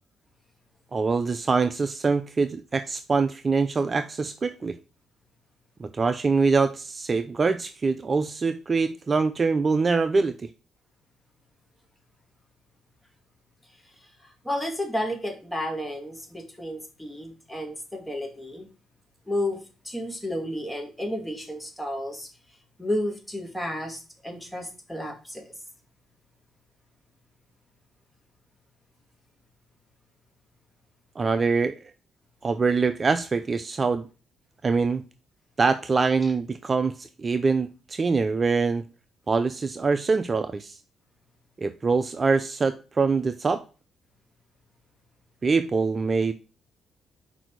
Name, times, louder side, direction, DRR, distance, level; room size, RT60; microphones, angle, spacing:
voice 1, 0.9-4.8 5.8-10.5 31.2-31.7 32.4-34.1 34.6-35.0 35.6-38.9 39.3-40.8 41.6-43.6 45.4-46.3, right 4 dB, 35° right, 0.5 m, -24 dB
voice 2, 13.7-18.7 19.3-25.5 36.2-36.3, left 1 dB, 5° left, 2.2 m, -32 dB
6.1 x 5.0 x 4.6 m
cardioid pair, 90°, 0 cm